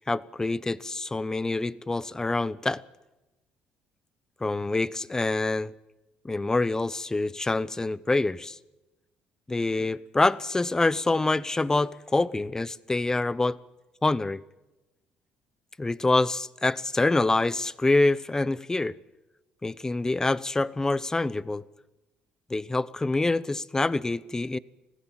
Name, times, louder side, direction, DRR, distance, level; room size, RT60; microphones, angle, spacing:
voice 1, 0.0-2.8 4.4-5.7 6.2-8.6 9.5-13.6 14.0-14.4 15.8-18.9 19.6-21.6 22.5-24.6, left 2 dB, 15° left, 0.8 m, -26 dB
19.5 x 15.5 x 9.0 m
supercardioid pair, 80°, 3 cm